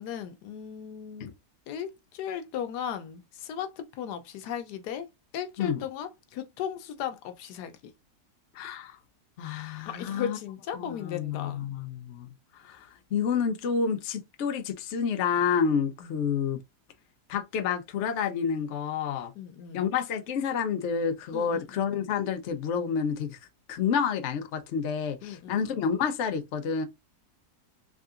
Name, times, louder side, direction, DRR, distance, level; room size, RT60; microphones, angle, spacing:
voice 1, 0.0-1.3 1.7-5.1 5.3-7.9 9.9-11.6 16.0-16.2 19.4-19.8 21.3-21.7 25.2-25.6, left 9 dB, 85° left, 1.3 m, -36 dB
voice 2, 8.5-9.0 9.4-10.4 10.8-12.3 12.5-16.6 17.3-19.3 19.7-23.4 23.7-26.8, left 6 dB, 55° left, 0.9 m, -29 dB
3.7 x 3.4 x 2.4 m
omnidirectional pair, 1.7 m